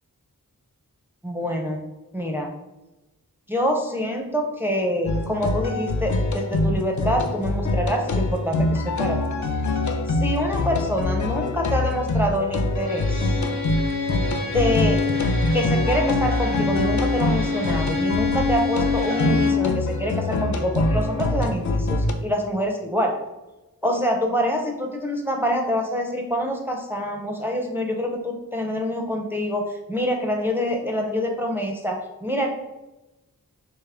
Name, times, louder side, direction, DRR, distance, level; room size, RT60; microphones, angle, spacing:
voice 1, 1.2-1.8 2.1-2.5 3.5-9.2 10.1-13.4 14.5-15.0 15.5-23.1 23.8-32.5, equal, 5° right, 2 dB, 0.5 m, -26 dB
sound 1, 5.1-22.1, left 2 dB, 55° left, 0.5 m, -24 dB
Bowed string instrument, 12.8-19.7, left 4 dB, 90° left, 1.4 m, -26 dB
3.5 x 3.0 x 3.4 m, 1.0 s
wide cardioid pair, 45°, 36 cm